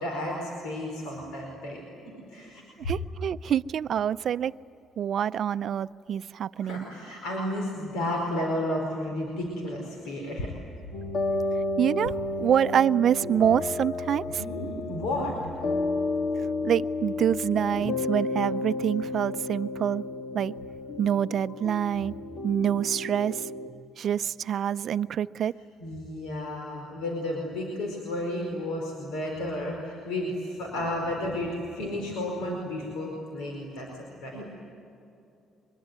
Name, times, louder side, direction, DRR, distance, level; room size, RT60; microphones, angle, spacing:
voice 1, 0.0-2.9 6.6-10.5 14.4-15.4 25.8-34.5, left 1 dB, 90° left, 0 dB, 4.8 m, -32 dB
voice 2, 2.8-4.5 5.0-6.9 11.8-14.4 16.6-20.0 20.3-20.5 21.0-22.1 22.4-23.5 24.0-25.5, right 9 dB, 60° right, 15 dB, 0.5 m, -26 dB
sound 1, 10.9-23.7, left 2 dB, 60° left, 2.2 m, -32 dB
24.5 x 22.0 x 9.4 m, 2.7 s
cardioid pair, 90°, 0 cm